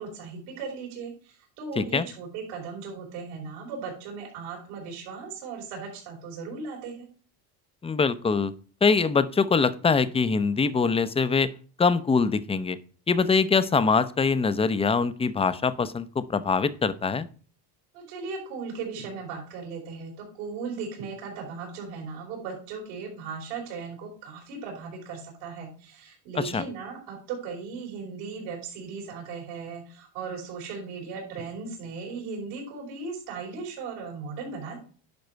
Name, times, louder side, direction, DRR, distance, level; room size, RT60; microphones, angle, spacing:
voice 1, 0.0-7.1 17.9-34.8, right 5 dB, 80° right, 0 dB, 4.7 m, -37 dB
voice 2, 1.8-2.1 7.8-8.5 8.8-11.5 11.8-12.8 13.1-17.3 26.4-26.6, left 5 dB, 15° left, 13 dB, 0.6 m, -23 dB
10.5 x 5.4 x 4.6 m, 0.40 s
cardioid pair, 125°, 45 cm